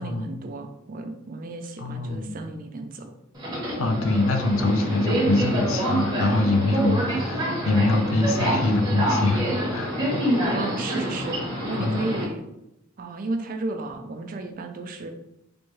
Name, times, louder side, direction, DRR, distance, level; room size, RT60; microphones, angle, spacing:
voice 1, 0.0-3.1 10.5-12.5 13.0-15.1, right 2 dB, 45° right, 5 dB, 0.4 m, -33 dB
voice 2, 1.8-2.3 3.8-9.9 11.8-12.0, left 2 dB, 85° left, 5 dB, 0.5 m, -24 dB
Subway metro underground, 3.3-12.2, right 1 dB, 20° right, 0.9 m, -26 dB
3.4 x 2.6 x 3.1 m, 0.85 s
head